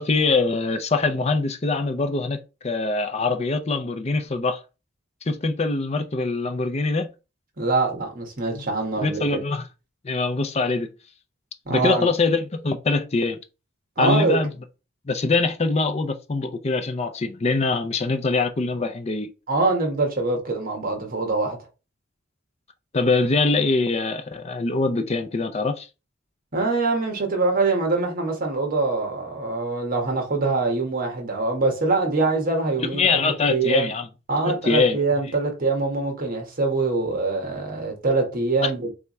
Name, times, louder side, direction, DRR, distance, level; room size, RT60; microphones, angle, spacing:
voice 1, 0.0-4.6 5.3-7.1 8.5-8.6 9.0-9.6 10.0-10.9 11.7-13.4 14.0-14.5 15.1-19.3 22.9-25.9 32.9-34.1 34.4-35.0 38.6-38.7, left 3 dB, 35° left, 0.5 m, -23 dB
voice 2, 7.6-9.4 11.7-12.1 14.0-14.4 19.5-21.6 26.5-33.9 34.3-38.9, right 3 dB, 50° right, 1.3 m, -24 dB
3.5 x 3.4 x 4.2 m
head